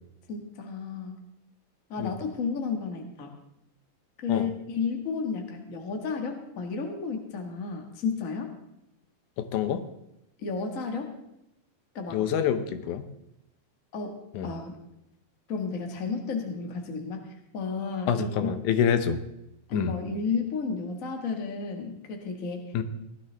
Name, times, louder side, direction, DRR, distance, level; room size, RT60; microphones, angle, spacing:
voice 1, 0.3-1.2 1.9-3.3 4.2-8.5 10.4-11.1 11.9-12.2 13.9-14.8 15.5-18.6 19.7-22.6, left 5 dB, 45° left, 3 dB, 1.0 m, -32 dB
voice 2, 9.4-9.8 12.1-13.1 14.3-14.5 18.1-19.2 19.7-19.9 22.7-22.8, left 8 dB, 75° left, 10 dB, 2.1 m, -26 dB
17.5 x 12.5 x 3.4 m, 0.86 s
omnidirectional pair, 4.0 m